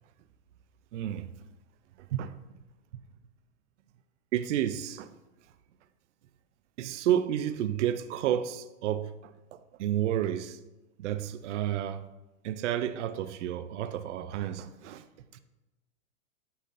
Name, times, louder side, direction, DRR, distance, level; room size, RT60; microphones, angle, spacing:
voice 1, 0.9-1.3 2.0-2.4 4.3-5.1 6.8-10.6 11.0-12.1 12.4-15.0 15.3-15.4, right 11 dB, 65° right, 0.5 m, -31 dB
8.6 x 5.5 x 2.5 m
supercardioid pair, 170°, 39 cm